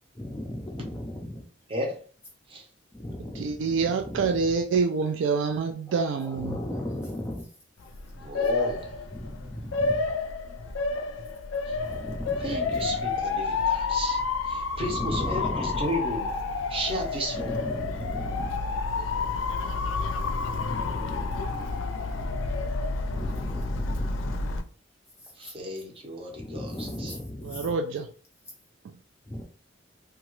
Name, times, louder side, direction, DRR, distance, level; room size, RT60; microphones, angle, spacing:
voice 1, 0.2-0.8 3.0-3.4 6.5-7.4 9.8-9.9 12.0-12.4 15.4-15.6 17.7-18.4 20.6-21.3 23.1-24.3 26.4-27.3 29.3-29.4, left 1 dB, 15° left, -2 dB, 0.4 m, -35 dB
voice 2, 3.3-6.6 27.4-28.1 28.8-28.9, right 5 dB, 75° right, 5 dB, 0.3 m, -27 dB
Motor vehicle (road) / Siren, 7.8-24.6, left 4 dB, 85° left, 0.4 m, -30 dB
voice 3, 8.1-9.1 11.7-11.8 12.4-16.3 16.7-17.6 25.4-27.2, equal, 30° right, 0 dB, 0.7 m, -34 dB
2.8 x 2.3 x 3.0 m, 0.41 s
head